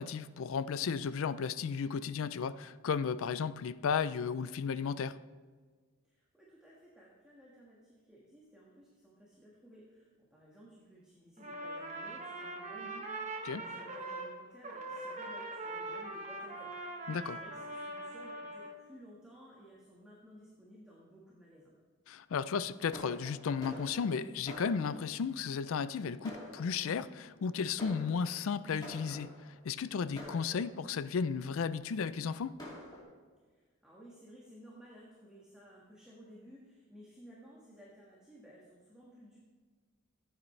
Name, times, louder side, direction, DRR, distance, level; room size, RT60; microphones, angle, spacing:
voice 1, 0.0-5.2 13.4-13.6 17.1-17.4 22.1-29.3 29.6-32.5, left 6 dB, 75° left, 16 dB, 0.4 m, -34 dB
voice 2, 6.0-21.7 33.5-39.4, equal, 5° right, -6 dB, 1.5 m, -56 dB
Trumpet, 11.4-14.3 14.6-18.7, right 2 dB, 30° right, 1.2 m, -42 dB
Fireworks, 22.9-25.3 25.9-26.0 26.2-27.1 27.8-29.6 30.2-31.1 31.8-31.9 32.2-32.3 32.6-33.0, left 1 dB, 20° left, 2.6 m, -48 dB
14.5 x 8.7 x 3.2 m, 1.5 s
head